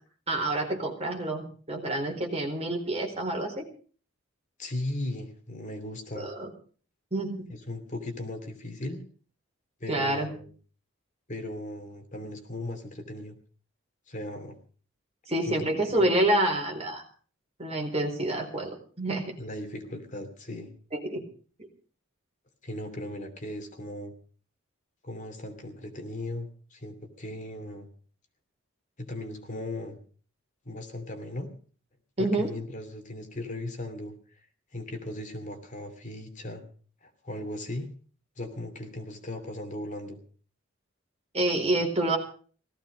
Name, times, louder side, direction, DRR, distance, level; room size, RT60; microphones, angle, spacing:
voice 1, 0.3-3.7 6.2-6.5 7.1-7.4 9.9-10.3 15.3-17.0 17.6-19.2 20.9-21.2 21.6-21.7 32.2-32.5 41.3-42.2, right 1 dB, 30° right, 2 dB, 4.3 m, -28 dB
voice 2, 4.6-6.3 7.5-9.0 9.8-10.5 11.3-13.4 14.1-14.6 15.5-16.1 19.4-20.7 22.6-24.1 25.0-27.9 29.0-30.0 30.6-31.5 32.2-34.1 34.7-36.6 37.0-37.9 38.4-40.2, left 1 dB, 40° left, 5 dB, 2.9 m, -37 dB
18.0 x 15.0 x 5.2 m, 0.43 s
head